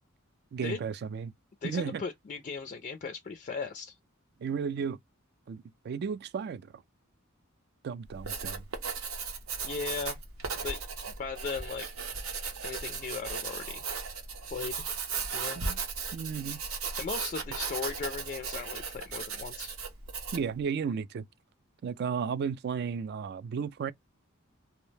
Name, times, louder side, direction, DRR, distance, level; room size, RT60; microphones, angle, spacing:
voice 1, 0.5-1.3 1.6-2.0 4.4-5.0 5.5-6.8 7.8-8.6 15.5-15.8 16.1-16.6 20.3-21.3 21.8-23.9, right 6 dB, 50° right, 0.3 m, -34 dB
voice 2, 1.6-3.9 9.6-10.2 10.6-10.8 11.2-11.9 12.6-13.8 14.5-14.7 15.3-15.6 17.0-19.7, left 5 dB, 35° left, 0.3 m, -37 dB
Writing, 8.1-20.5, right 5 dB, 85° right, 0.8 m, -36 dB
2.7 x 2.0 x 3.1 m
head